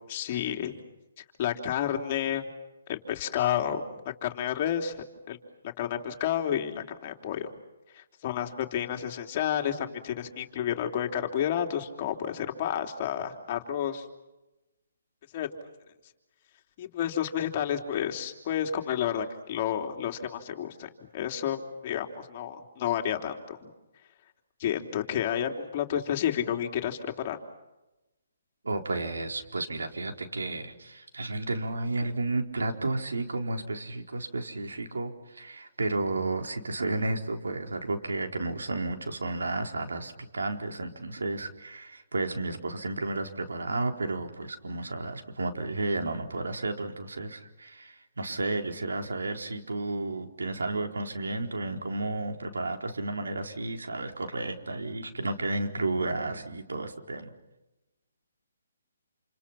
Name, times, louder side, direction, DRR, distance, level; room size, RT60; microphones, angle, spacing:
voice 1, 0.1-0.8 1.4-2.4 2.9-3.8 4.2-4.9 5.3-5.4 5.6-7.5 7.9-14.0 15.3-15.5 16.8-23.7 24.6-27.0 27.2-27.4, left 10 dB, 35° left, 4 dB, 3.2 m, -30 dB
voice 2, 28.6-57.3, right 2 dB, 90° right, 4 dB, 4.2 m, -32 dB
28.5 x 28.5 x 5.8 m, 0.99 s
hypercardioid pair, 160°, 0 cm